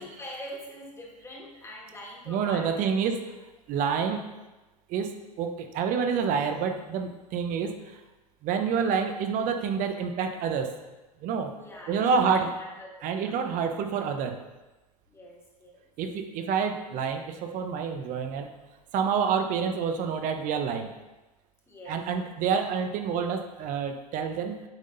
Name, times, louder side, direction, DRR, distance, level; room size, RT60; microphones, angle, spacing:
voice 1, 0.0-3.0 11.5-13.4 15.1-15.8 21.7-22.3, left 1 dB, 15° left, -2 dB, 1.8 m, -44 dB
voice 2, 2.3-3.2 3.7-4.2 4.9-5.1 5.4-7.7 8.4-10.7 11.2-11.5 11.9-12.5 13.0-14.4 16.0-18.5 18.9-20.9 21.9-24.6, right 6 dB, 40° right, 6 dB, 0.9 m, -28 dB
8.9 x 3.8 x 4.0 m, 1.1 s
hypercardioid pair, 90°, 20 cm